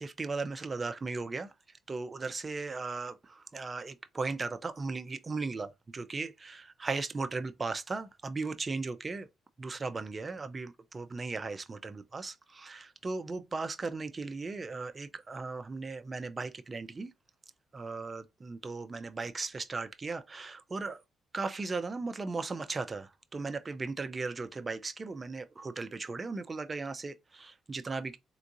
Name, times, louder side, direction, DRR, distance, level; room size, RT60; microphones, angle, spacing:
voice 1, 0.0-1.5 1.9-9.3 9.6-17.1 17.7-21.0 21.3-28.2, right 3 dB, 30° right, 0.5 m, -37 dB
3.5 x 2.8 x 2.6 m
cardioid pair, 90°, 0 cm